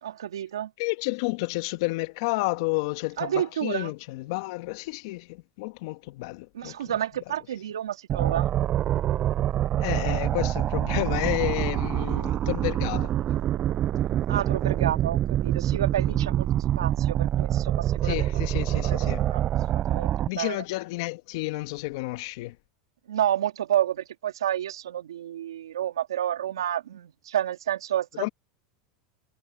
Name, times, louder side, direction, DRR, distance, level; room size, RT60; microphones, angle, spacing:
voice 1, 0.0-0.7 3.2-3.9 6.5-8.5 14.3-18.3 18.8-19.4 19.7-20.6 23.1-28.3, right 11 dB, 90° right, 2.4 m, -30 dB
voice 2, 0.8-6.8 9.8-13.1 16.1-16.2 18.0-19.2 20.3-22.6 28.1-28.3, left 23 dB, 65° left, 1.7 m, -31 dB
sound 1, 8.1-20.3, right 12 dB, 40° right, 0.4 m, -25 dB
hypercardioid pair, 100°, 2 cm